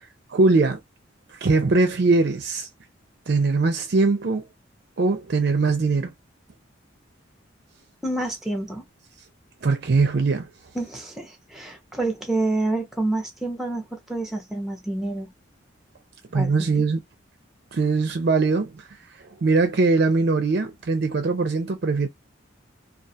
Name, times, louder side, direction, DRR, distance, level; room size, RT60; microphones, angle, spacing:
voice 1, 0.3-0.8 1.3-2.7 3.3-4.5 5.0-6.1 9.6-10.5 16.3-17.0 17.7-18.7 19.4-22.1, right 3 dB, 55° right, 0.4 m, -21 dB
voice 2, 8.0-8.8 10.7-15.3 16.3-16.8, right 2 dB, ahead, 0.6 m, -28 dB
2.4 x 2.3 x 2.7 m
head